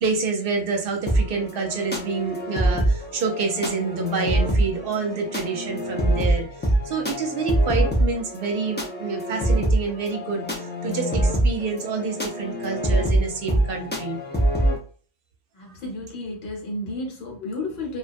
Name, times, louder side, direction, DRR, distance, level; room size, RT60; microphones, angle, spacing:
voice 1, 0.0-6.6 6.8-14.2, right 4 dB, 55° right, 3 dB, 0.8 m, -28 dB
sound 1, 1.1-14.8, right 1 dB, 15° left, 0.3 m, -24 dB
voice 2, 15.5-18.0, left 2 dB, 60° left, -1 dB, 1.0 m, -32 dB
2.3 x 2.1 x 2.5 m, 0.42 s
omnidirectional pair, 1.2 m